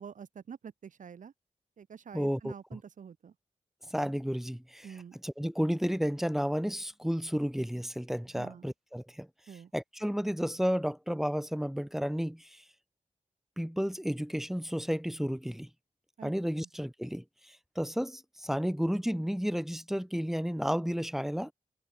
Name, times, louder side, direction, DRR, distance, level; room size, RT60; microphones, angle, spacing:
voice 1, 0.0-1.3 1.8-3.3 4.8-5.2 8.4-8.7 9.5-9.7 16.2-16.7, right 7 dB, 75° right, 2.1 m, -47 dB
voice 2, 2.1-2.8 3.9-4.9 5.2-9.3 9.7-12.6 13.6-15.7 16.2-21.5, equal, ahead, 2.1 m, -32 dB
wide cardioid pair, 90°, 13 cm